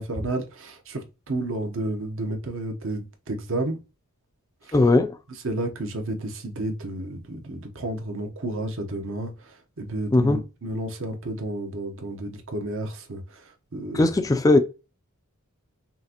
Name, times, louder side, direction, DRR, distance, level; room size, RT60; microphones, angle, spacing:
voice 1, 0.0-3.8 4.6-4.8 5.4-14.1, right 1 dB, 65° right, 0.9 m, -31 dB
voice 2, 4.7-5.2 10.1-10.4 13.9-14.6, left 2 dB, 15° left, 0.3 m, -18 dB
5.6 x 2.5 x 2.8 m
head